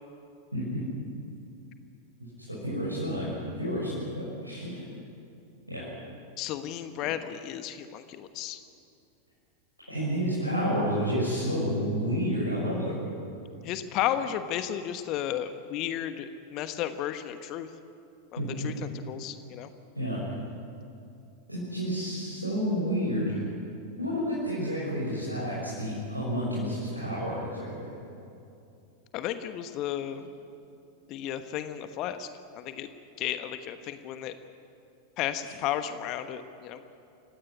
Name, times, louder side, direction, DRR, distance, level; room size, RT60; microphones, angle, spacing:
voice 1, 0.5-0.9 2.5-4.8 5.7-5.9 9.9-13.0 18.4-18.7 19.9-20.2 21.5-23.4 24.0-27.9 35.4-35.5, equal, 90° right, -6 dB, 6.3 m, -30 dB
voice 2, 6.4-8.6 13.6-17.7 18.3-18.7 19.1-19.7 29.1-30.2 31.1-32.3 32.5-32.9 33.2-34.3 35.2-36.8, left 11 dB, 40° left, 10 dB, 1.2 m, -33 dB
28.5 x 17.0 x 9.9 m, 2.6 s
figure-of-eight pair, 90°, 0 cm